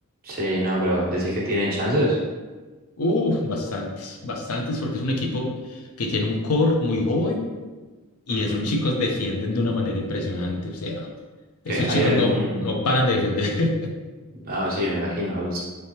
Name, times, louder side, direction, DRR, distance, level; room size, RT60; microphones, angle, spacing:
voice 1, 0.2-2.2 8.3-8.7 11.7-12.6 14.3-15.6, equal, 40° right, -6 dB, 1.1 m, -25 dB
voice 2, 3.0-7.4 8.3-11.1 11.6-13.9, left 2 dB, 80° left, 2 dB, 0.6 m, -25 dB
3.4 x 3.2 x 2.8 m, 1.3 s
head